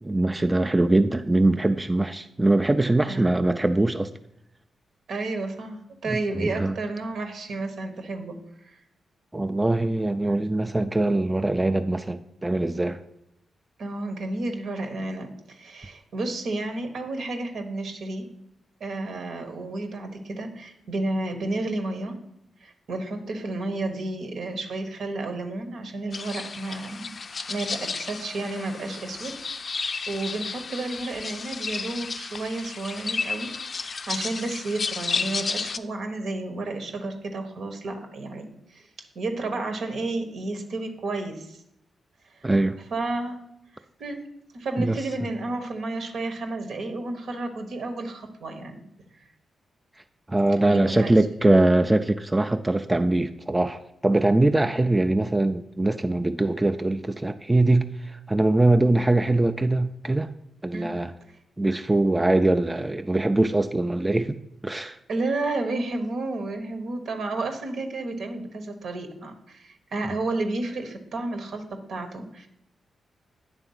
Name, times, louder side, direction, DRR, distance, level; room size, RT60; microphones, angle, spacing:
voice 1, 0.0-4.1 6.4-6.7 9.3-13.0 42.4-42.8 44.8-45.0 50.3-60.3 60.6-61.1 61.6-64.4 64.6-65.0, right 2 dB, 20° right, 0.4 m, -22 dB
voice 2, 5.1-8.4 8.6-8.8 13.8-18.3 18.8-22.2 22.6-27.2 27.5-38.9 39.1-41.6 42.3-42.5 42.9-43.5 44.0-44.2 44.5-48.8 50.5-51.2 51.5-51.6 60.7-60.9 65.1-72.5, right 2 dB, 75° right, 1.1 m, -31 dB
sound 1, 26.1-35.8, left 4 dB, 50° left, 0.4 m, -32 dB
9.1 x 3.4 x 5.6 m
supercardioid pair, 55°, 0 cm